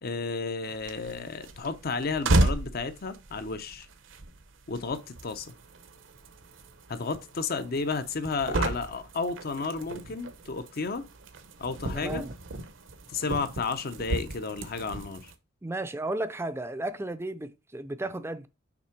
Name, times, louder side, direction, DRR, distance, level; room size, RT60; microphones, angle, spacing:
voice 1, 0.0-3.9 4.7-5.5 6.9-11.1 11.6-12.2 13.1-15.3, left 4 dB, 50° left, 0.7 m, -32 dB
sound 1, 0.6-15.3, right 1 dB, 70° right, 0.8 m, -34 dB
voice 2, 11.9-12.3 15.6-18.5, right 2 dB, 10° right, 0.5 m, -34 dB
6.1 x 3.7 x 4.5 m
head